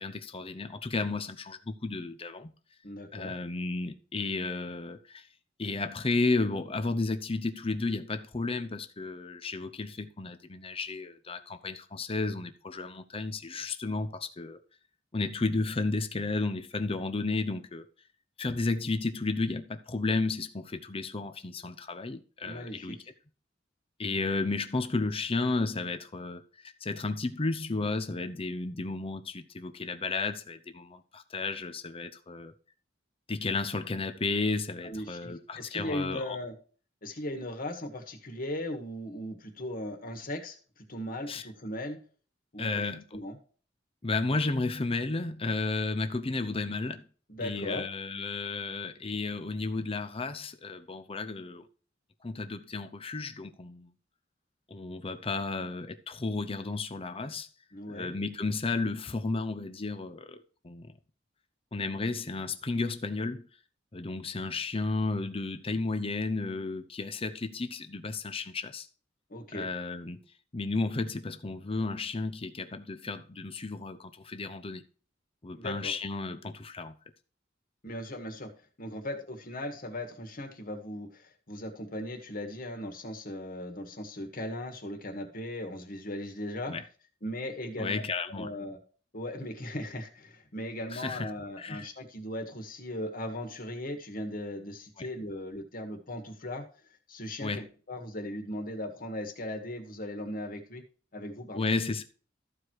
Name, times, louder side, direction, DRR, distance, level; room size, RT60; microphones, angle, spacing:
voice 1, 0.0-2.5 3.1-5.3 5.6-14.6 15.1-17.8 18.4-23.0 24.0-26.4 26.8-32.5 33.3-36.4 41.3-41.4 42.6-43.2 44.0-47.1 47.4-51.7 52.2-53.9 54.7-57.5 57.9-60.4 60.6-61.0 61.7-63.5 63.9-68.9 69.5-70.2 70.5-74.8 75.4-76.9 86.7-86.8 87.8-88.5 90.9-91.3 91.6-91.9 97.4-97.7 101.5-102.0, left 3 dB, 30° left, 0.7 m, -33 dB
voice 2, 2.8-3.3 22.5-23.0 34.8-36.5 37.0-42.0 42.5-42.8 43.1-43.4 47.3-47.8 57.7-58.1 69.3-69.7 75.5-75.9 77.8-78.5 78.8-86.7 87.2-88.0 88.3-88.8 89.1-96.6 97.1-100.8 101.1-101.7, left 1 dB, 50° left, 1.9 m, -38 dB
13.5 x 4.8 x 4.6 m
head